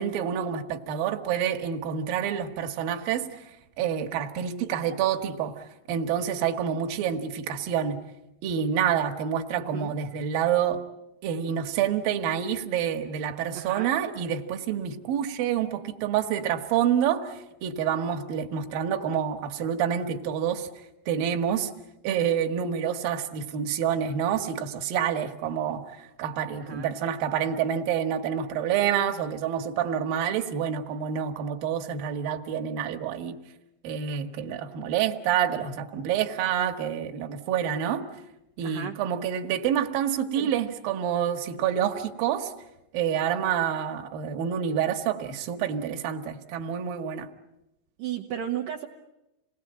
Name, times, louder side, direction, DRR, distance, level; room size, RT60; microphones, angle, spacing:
voice 1, 0.0-3.5 3.8-8.0 8.4-10.8 11.2-20.7 21.1-21.7 22.0-33.4 33.8-38.1 38.6-42.5 42.9-47.3, right 9 dB, 65° right, 5 dB, 2.6 m, -28 dB
voice 2, 9.6-9.9 13.5-13.9 26.6-26.9 38.6-39.0 40.4-40.5 48.0-48.9, right 10 dB, 80° right, 2 dB, 1.9 m, -34 dB
28.0 x 19.5 x 8.7 m, 0.92 s
omnidirectional pair, 5.2 m